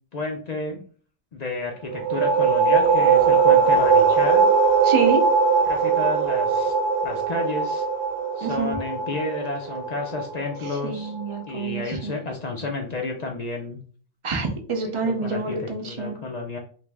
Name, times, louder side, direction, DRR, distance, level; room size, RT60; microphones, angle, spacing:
voice 1, 0.1-0.8 1.3-4.5 5.6-6.7 7.0-7.8 8.4-11.1 11.5-13.8 14.8-16.6, left 3 dB, 60° left, 1 dB, 0.4 m, -31 dB
sound 1, 1.9-11.3, right 5 dB, 65° right, 0.9 m, -20 dB
voice 2, 4.8-5.2 8.4-8.7 10.8-12.2 14.2-16.2, right 4 dB, 40° right, 3 dB, 0.4 m, -27 dB
2.9 x 2.5 x 3.3 m, 0.44 s
omnidirectional pair, 1.3 m